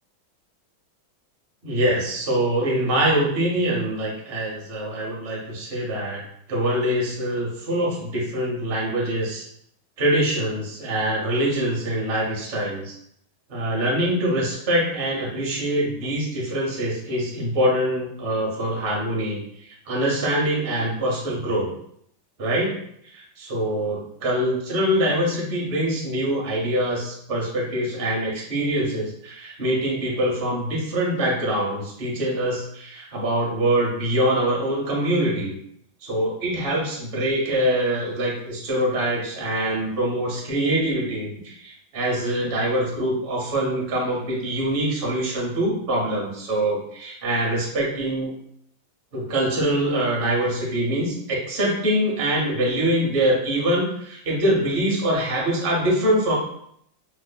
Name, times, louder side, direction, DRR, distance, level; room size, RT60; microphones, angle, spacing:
voice 1, 1.6-6.2 6.5-9.4 10.0-12.9 13.5-21.7 22.4-22.7 23.1-35.5 36.0-48.3 49.1-56.3, right 1 dB, 65° right, -3 dB, 0.5 m, -24 dB
4.6 x 2.5 x 2.2 m, 0.70 s
omnidirectional pair, 2.2 m